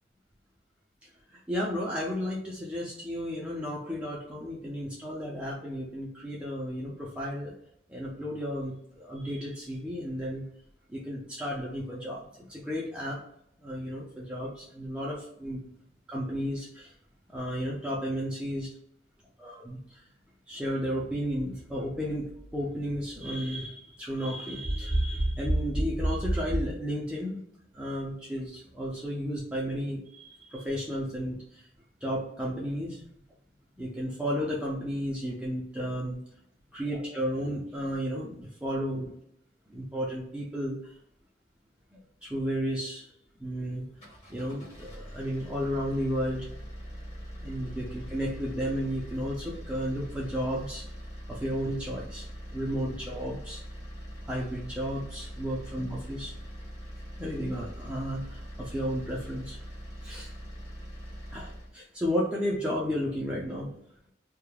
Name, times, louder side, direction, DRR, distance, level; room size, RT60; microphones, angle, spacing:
voice 1, 1.3-7.6 7.9-10.4 10.9-13.2 13.6-15.6 16.1-16.9 17.3-18.7 19.4-20.0 20.5-27.4 27.7-31.6 32.0-33.0 33.8-36.2 36.7-39.1 39.7-40.8 42.2-43.1 43.4-43.8 44.3-46.5 47.4-50.9 51.3-53.6 54.2-56.3 57.2-59.6 60.0-60.3 61.3-63.7, equal, 5° right, -5 dB, 0.4 m, -32 dB
sound 1, 43.8-61.7, equal, 40° left, 1.2 m, -42 dB
2.3 x 2.0 x 3.1 m, 0.73 s
head